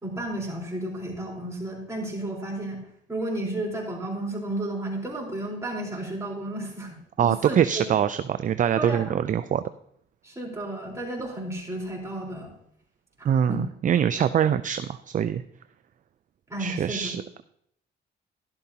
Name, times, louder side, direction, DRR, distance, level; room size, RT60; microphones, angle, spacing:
voice 1, 0.0-2.8 3.1-7.8 8.7-9.2 10.2-12.5 13.2-13.6 16.5-17.2, right 1 dB, 15° right, -3 dB, 4.2 m, -33 dB
voice 2, 7.2-9.6 13.2-15.4 16.6-17.2, right 9 dB, 40° right, 12 dB, 0.4 m, -24 dB
12.0 x 11.5 x 2.9 m, 0.69 s
cardioid pair, 90°, 20 cm